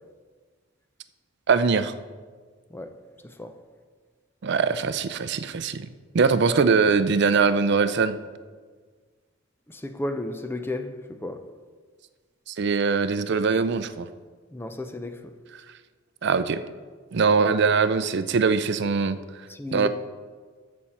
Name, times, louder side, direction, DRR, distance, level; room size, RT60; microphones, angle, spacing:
voice 1, 1.5-1.9 4.4-5.9 6.1-8.2 12.5-14.1 16.2-16.6 17.1-19.2 19.7-19.9, right 5 dB, 60° right, 0.5 m, -22 dB
voice 2, 9.7-11.4 14.5-15.2 19.5-19.9, left 2 dB, 10° left, 0.5 m, -33 dB
11.5 x 7.3 x 4.3 m
head